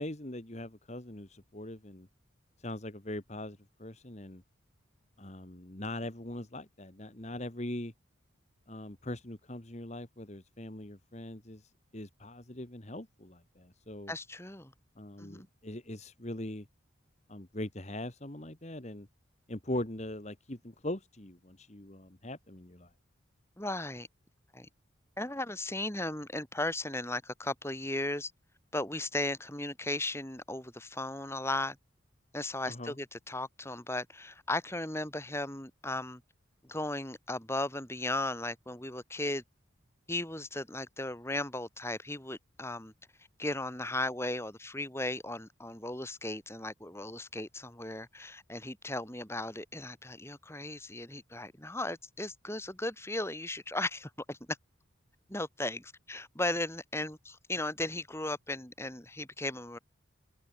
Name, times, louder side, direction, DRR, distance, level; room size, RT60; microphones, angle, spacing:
voice 1, 0.0-2.1 2.6-4.4 5.2-7.9 8.7-14.1 15.0-16.7 17.3-19.1 19.5-22.9 32.7-32.9, left 1 dB, 35° left, 1.9 m, -41 dB
voice 2, 14.1-14.7 15.2-15.5 23.6-24.1 24.5-24.7 25.2-28.3 28.7-31.8 32.3-36.2 36.6-39.4 40.1-42.9 43.4-54.6 55.3-59.8, left 2 dB, 15° left, 4.9 m, -36 dB
head